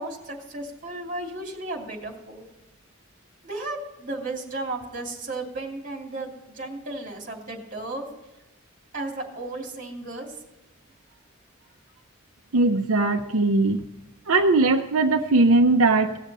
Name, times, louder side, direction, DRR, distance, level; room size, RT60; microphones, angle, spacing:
voice 1, 0.0-2.4 3.4-8.1 8.9-10.3, right 2 dB, 40° right, 0 dB, 2.8 m, -34 dB
voice 2, 12.5-13.8 14.3-16.2, right 2 dB, 90° right, 4 dB, 0.7 m, -20 dB
18.0 x 6.8 x 4.2 m, 1.0 s
head